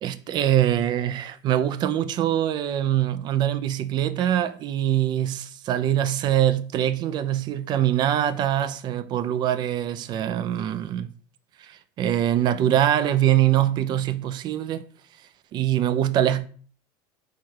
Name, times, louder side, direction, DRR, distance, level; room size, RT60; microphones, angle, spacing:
voice 1, 0.0-11.1 11.6-14.8 15.5-16.5, right 11 dB, 40° right, 0.4 m, -23 dB
4.5 x 2.4 x 4.5 m
supercardioid pair, 120°, 12 cm